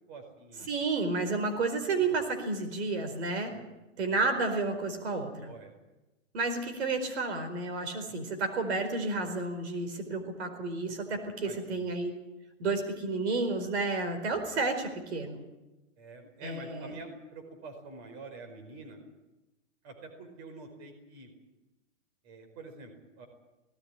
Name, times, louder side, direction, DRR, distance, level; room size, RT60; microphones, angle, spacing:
voice 1, 0.1-0.7 2.0-2.1 3.5-3.6 5.4-5.7 11.4-11.9 16.0-19.0 19.8-21.3 22.2-23.3, right 3 dB, 35° right, 6 dB, 4.9 m, -47 dB
voice 2, 0.7-3.6 4.0-5.5 6.3-12.2 12.6-15.4 16.4-16.9, right 3 dB, 60° right, 6 dB, 4.6 m, -31 dB
19.0 x 17.5 x 9.9 m, 1.0 s
hypercardioid pair, 160°, 37 cm